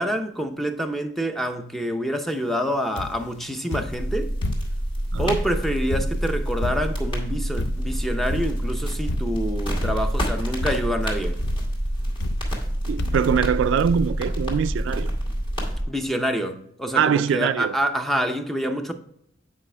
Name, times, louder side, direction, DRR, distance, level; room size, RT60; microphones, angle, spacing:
voice 1, 0.0-4.3 5.2-11.4 15.9-18.9, equal, ahead, 0.6 m, -27 dB
sound 1, 3.0-3.3 3.7-4.9 5.2-7.1 7.6-8.0 8.3-8.7 9.1-9.5 9.8-10.3 10.6-11.0 11.4-11.7 12.2-12.7 13.0-13.4 14.1-14.2 14.4-14.5, left 2 dB, 65° left, 0.5 m, -32 dB
sound 2, 3.9-15.8, equal, 25° left, 2.1 m, -27 dB
voice 2, 12.9-15.1 17.0-17.8, right 7 dB, 75° right, 0.3 m, -23 dB
8.6 x 5.0 x 3.3 m
head